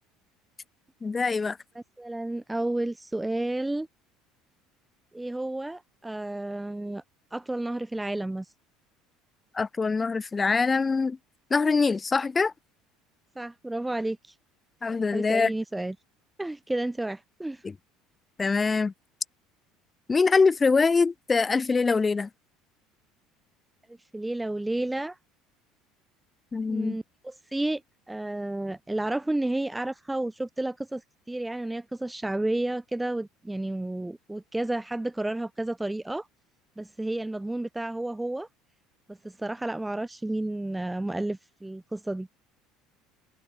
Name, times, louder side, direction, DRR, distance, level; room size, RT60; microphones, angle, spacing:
voice 1, 1.0-1.6 9.5-11.2 11.5-12.5 14.8-15.5 17.6-17.7 18.4-18.9 20.1-22.3 26.5-26.9, left 4 dB, 20° left, 1.0 m, -24 dB
voice 2, 2.0-3.9 5.1-7.0 7.3-8.5 13.4-14.4 15.1-15.9 16.4-17.6 24.1-25.2 26.7-27.8 28.1-31.0 31.3-36.3 36.8-38.5 39.1-42.3, right 1 dB, 5° right, 0.5 m, -31 dB
cardioid pair, 135°, 0 cm